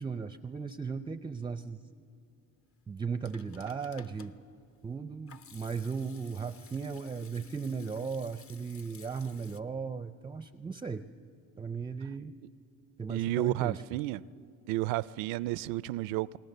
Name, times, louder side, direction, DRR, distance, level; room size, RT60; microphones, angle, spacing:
voice 1, 0.0-1.8 2.9-4.4 4.8-11.1 11.6-12.3 13.0-13.8, right 5 dB, 15° right, 0.4 m, -36 dB
Hands / Sink (filling or washing), 2.9-9.6, left 6 dB, 45° left, 0.8 m, -56 dB
voice 2, 13.1-14.2 14.7-16.4, right 17 dB, 85° right, 0.5 m, -31 dB
28.5 x 20.0 x 6.7 m
cardioid pair, 105°, 33 cm